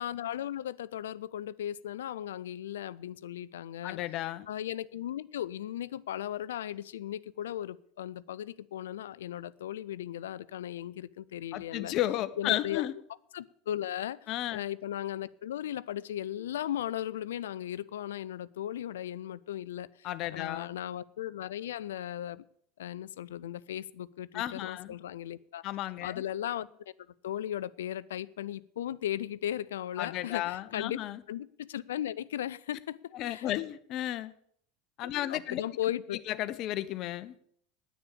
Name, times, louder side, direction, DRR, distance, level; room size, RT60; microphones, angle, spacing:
voice 1, 0.0-4.0 4.5-11.9 12.4-12.9 13.3-14.3 14.5-22.4 22.8-25.6 26.0-26.7 27.2-31.0 31.3-33.0 33.3-33.5 35.0-36.2, left 11 dB, 75° left, 0.4 m, -37 dB
voice 2, 3.8-4.5 11.5-12.9 14.3-14.6 20.0-20.7 24.3-24.9 25.6-26.2 30.0-31.2 33.1-34.3 35.0-35.6 36.3-37.3, left 14 dB, 50° left, 0.8 m, -33 dB
9.9 x 8.6 x 8.6 m
hypercardioid pair, 80°, 0 cm